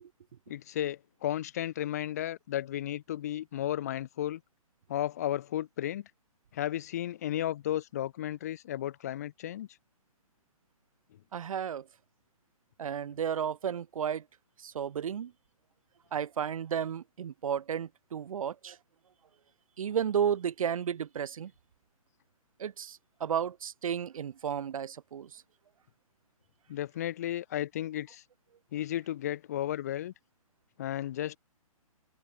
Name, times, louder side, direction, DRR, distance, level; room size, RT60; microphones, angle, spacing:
voice 1, 0.5-4.4 4.9-6.1 6.5-9.7 26.7-28.2 28.7-30.1 30.8-31.4, left 12 dB, 25° left, 0.8 m, -34 dB
voice 2, 11.3-11.8 12.8-14.2 14.6-15.3 16.1-18.8 19.8-21.5 22.6-25.4, right 8 dB, 65° right, 0.5 m, -33 dB
open air
hypercardioid pair, 170°, 19 cm